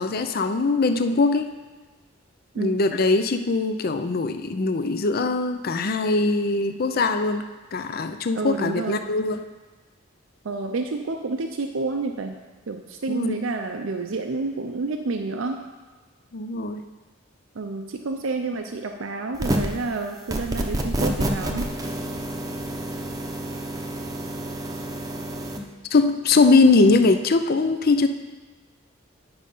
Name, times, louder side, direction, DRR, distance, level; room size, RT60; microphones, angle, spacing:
voice 1, 0.0-1.5 2.6-7.4 7.7-9.5 13.1-13.4 16.3-16.8 25.9-28.1, left 3 dB, 50° left, 8 dB, 0.5 m, -21 dB
voice 2, 8.3-9.1 10.4-12.4 12.7-15.6 17.5-21.7, right 3 dB, 85° right, 4 dB, 0.6 m, -29 dB
sound 1, 19.3-19.8 20.3-25.6, right 1 dB, 20° right, 0.7 m, -28 dB
9.6 x 5.2 x 5.5 m, 1.4 s
head